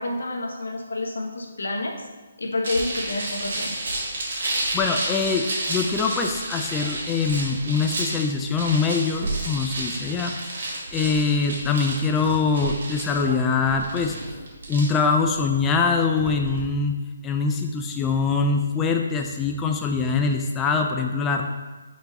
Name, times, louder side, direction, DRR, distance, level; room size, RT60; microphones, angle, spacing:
voice 1, 0.0-2.1 2.4-3.7, left 2 dB, 85° left, 1 dB, 1.1 m, -29 dB
sound 1, 2.6-16.6, right 2 dB, 60° right, 1.6 m, -31 dB
voice 2, 4.7-14.2 14.7-17.0 17.2-21.4, left 4 dB, 10° left, 3 dB, 0.3 m, -23 dB
4.6 x 4.0 x 5.2 m, 1.2 s
hypercardioid pair, 160°, 0 cm